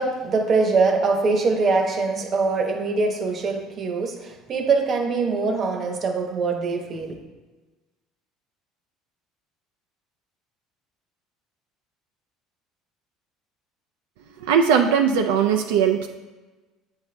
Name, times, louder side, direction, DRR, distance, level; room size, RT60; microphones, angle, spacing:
voice 1, 0.0-7.2, right 4 dB, 45° right, 5 dB, 0.9 m, -23 dB
voice 2, 14.4-16.1, right 7 dB, 85° right, 4 dB, 0.4 m, -19 dB
7.9 x 4.1 x 3.3 m, 1.2 s
supercardioid pair, 90°, 0 cm